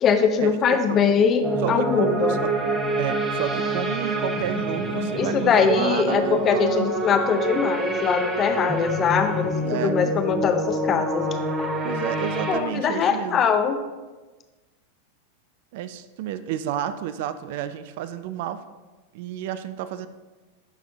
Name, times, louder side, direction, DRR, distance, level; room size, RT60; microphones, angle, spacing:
voice 1, 0.0-2.4 5.1-11.3 11.6-11.7 12.5-13.8, left 6 dB, 30° left, 7 dB, 0.6 m, -22 dB
sound 1, 1.4-12.6, right 1 dB, 20° right, 0.8 m, -26 dB
voice 2, 1.6-2.5 3.0-7.2 9.6-10.0 11.8-13.4 15.7-18.6 19.1-20.1, right 10 dB, 50° right, 12 dB, 0.3 m, -31 dB
11.5 x 4.3 x 2.7 m, 1.2 s
figure-of-eight pair, 90°, 0 cm